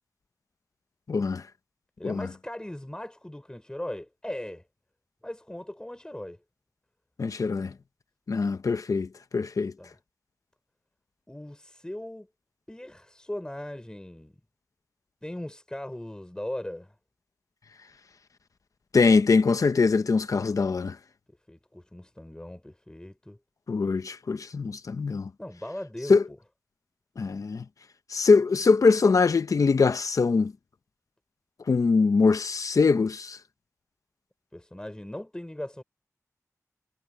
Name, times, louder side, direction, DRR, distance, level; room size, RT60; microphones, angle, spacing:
voice 1, 1.1-1.4 2.0-2.3 7.2-7.7 8.3-9.7 18.9-21.0 23.7-25.3 26.1-26.2 27.2-27.6 28.1-30.5 31.7-33.4, left 4 dB, 85° left, 0.9 m, -23 dB
voice 2, 2.0-4.6 5.2-6.4 9.8-9.9 11.3-12.3 12.7-14.4 15.2-17.0 21.3-23.4 25.4-26.2 34.5-35.8, left 1 dB, 15° left, 5.8 m, -38 dB
wide cardioid pair, 90°, 6 cm